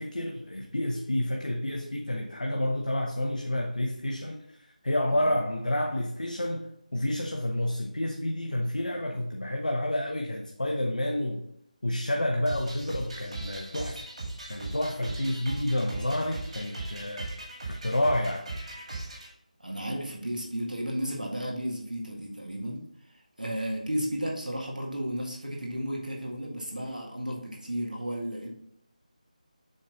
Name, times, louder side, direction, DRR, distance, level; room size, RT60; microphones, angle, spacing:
voice 1, 0.0-11.4 11.8-14.1 14.5-17.3 17.7-18.5, left 1 dB, 75° left, 0.7 m, -29 dB
sound 1, 12.5-19.3, right 2 dB, 55° right, 2.3 m, -38 dB
voice 2, 19.6-22.8 23.4-28.5, equal, 85° right, 1.7 m, -33 dB
7.5 x 3.2 x 3.9 m
figure-of-eight pair, 160°, 4 cm